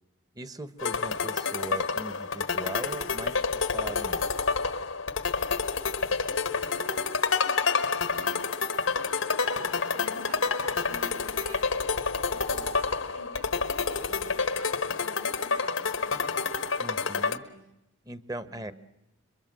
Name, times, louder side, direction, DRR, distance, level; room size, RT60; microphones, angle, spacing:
voice 1, 0.3-4.2 16.8-17.4 18.0-18.7, right 1 dB, 20° right, 13 dB, 1.1 m, -39 dB
sound 1, 0.8-17.4, left 4 dB, 80° left, 1.3 m, -28 dB
voice 2, 6.7-8.4 8.9-11.9 12.3-16.2 17.0-17.6 18.4-18.7, right 2 dB, 70° right, 6 dB, 5.0 m, -48 dB
27.0 x 23.0 x 7.7 m, 0.91 s
head